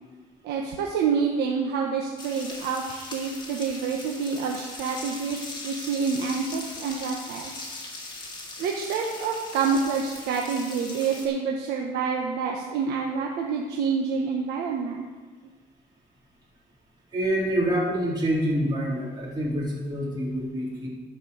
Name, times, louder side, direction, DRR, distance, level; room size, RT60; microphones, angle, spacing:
voice 1, 0.4-7.7 8.6-15.1, right 5 dB, 80° right, 0 dB, 1.2 m, -27 dB
sound 1, 2.2-11.3, left 2 dB, 25° left, 2.6 m, -40 dB
voice 2, 17.1-20.9, right 1 dB, 25° right, -6 dB, 3.7 m, -26 dB
12.0 x 5.6 x 7.1 m, 1.4 s
cardioid pair, 110°, 17 cm